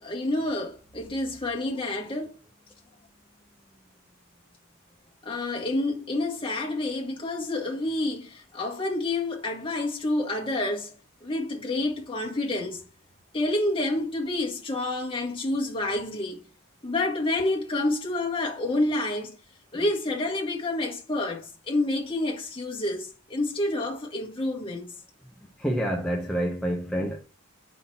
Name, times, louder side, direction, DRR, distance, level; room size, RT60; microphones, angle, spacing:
voice 1, 0.0-2.3 5.2-10.9 11.2-12.8 13.3-16.4 16.8-19.4 19.7-24.9, left 2 dB, 25° left, 1.9 m, -28 dB
voice 2, 25.6-27.2, equal, 5° left, 0.9 m, -27 dB
5.7 x 5.6 x 5.8 m
head